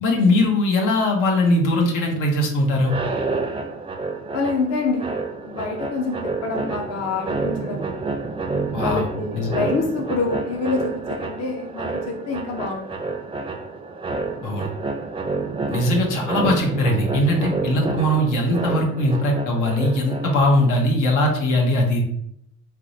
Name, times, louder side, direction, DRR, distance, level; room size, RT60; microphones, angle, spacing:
voice 1, 0.0-2.9 8.7-9.1 9.3-9.5 14.4-14.7 15.7-22.0, left 1 dB, 90° left, 1 dB, 0.8 m, -20 dB
sound 1, 2.8-20.7, right 3 dB, 20° right, 0.4 m, -29 dB
voice 2, 4.3-8.1 8.8-13.1, left 4 dB, 55° left, 3 dB, 0.6 m, -27 dB
4.4 x 2.1 x 2.6 m, 0.72 s
cardioid pair, 90°, 30 cm